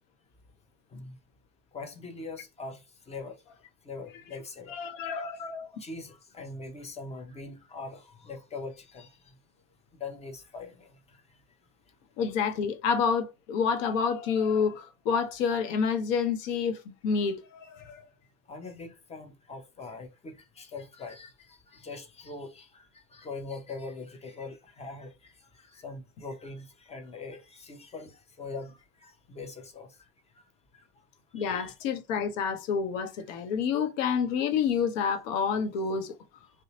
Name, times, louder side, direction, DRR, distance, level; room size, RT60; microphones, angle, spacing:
voice 1, 1.7-3.4 3.8-4.7 5.0-9.3 10.0-11.2 18.5-30.0 31.4-31.7, left 3 dB, 15° left, 0.6 m, -42 dB
voice 2, 4.7-5.3 12.2-18.0 31.3-36.2, left 6 dB, 55° left, 0.7 m, -28 dB
2.6 x 2.1 x 2.8 m
hypercardioid pair, 85°, 45 cm